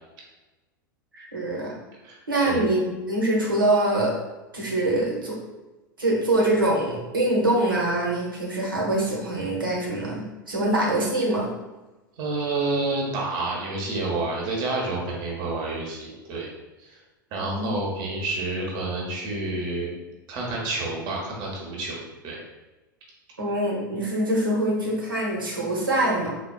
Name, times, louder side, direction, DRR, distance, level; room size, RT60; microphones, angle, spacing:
voice 1, 1.1-1.7 2.3-4.1 4.5-5.4 6.0-11.5 17.4-17.7 23.4-26.3, right 1 dB, 80° right, -3 dB, 0.9 m, -24 dB
voice 2, 2.0-2.7 12.2-16.5 16.8-17.0 17.3-19.9 20.3-22.4, right 2 dB, 40° right, -2 dB, 0.9 m, -29 dB
3.8 x 2.3 x 2.2 m, 1.1 s
figure-of-eight pair, 90°, 11 cm